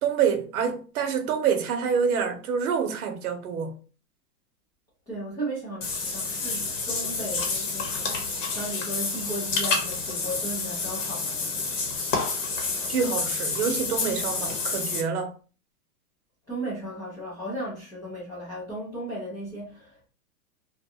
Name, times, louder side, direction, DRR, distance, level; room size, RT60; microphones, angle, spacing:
voice 1, 0.0-3.7 12.9-15.3, right 6 dB, 70° right, 0.8 m, -26 dB
voice 2, 5.1-8.1 8.5-11.7 16.5-20.1, right 1 dB, 10° left, 0.3 m, -35 dB
Water / Bathtub (filling or washing), 5.8-15.0, left 4 dB, 55° left, 1.0 m, -29 dB
2.4 x 2.2 x 2.7 m
hypercardioid pair, 145°, 45 cm